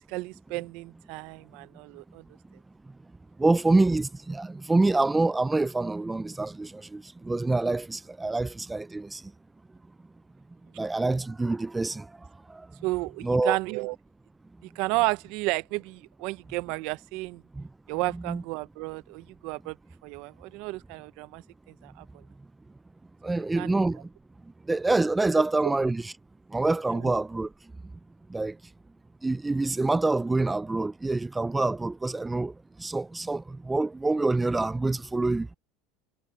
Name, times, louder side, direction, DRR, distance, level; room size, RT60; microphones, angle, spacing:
voice 1, 0.1-2.2 12.8-14.0 14.6-17.4 17.9-19.8 20.0-21.4 21.8-22.1 23.6-23.7 26.9-27.1, right 22 dB, 65° right, 0.7 m, -32 dB
voice 2, 3.4-9.2 10.8-12.1 12.5-12.7 13.2-13.6 17.6-17.7 18.3-18.4 23.2-24.0 24.7-26.1 26.5-27.5 28.3-28.6 29.2-32.5 32.8-35.5, right 2 dB, 10° right, 0.4 m, -26 dB
supercardioid pair, 125°, 0 cm